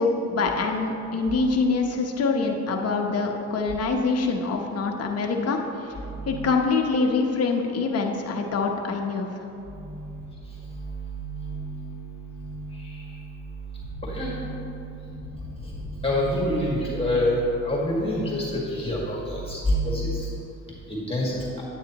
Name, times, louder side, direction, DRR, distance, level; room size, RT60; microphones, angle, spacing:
voice 1, 0.0-5.6 6.3-9.3, left 4 dB, 55° left, 2 dB, 1.0 m, -25 dB
voice 2, 9.7-10.2 10.5-10.8 11.1-13.2 14.0-20.3 20.9-21.4, equal, 20° left, -5 dB, 1.9 m, -28 dB
9.0 x 8.8 x 3.0 m, 2.8 s
cardioid pair, 90°, 30 cm